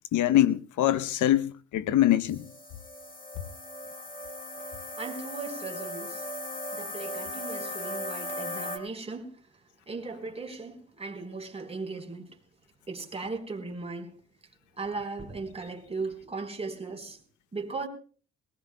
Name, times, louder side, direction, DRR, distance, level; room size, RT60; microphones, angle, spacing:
voice 1, 0.1-2.5, left 12 dB, 75° left, 0.8 m, -23 dB
sound 1, 2.3-8.8, left 1 dB, 25° left, 2.6 m, -37 dB
voice 2, 5.0-6.3 6.7-9.4 9.9-12.4 12.9-14.2 14.8-17.2 17.5-17.9, right 3 dB, 20° right, 3.9 m, -37 dB
21.5 x 19.0 x 2.2 m
cardioid pair, 90°, 30 cm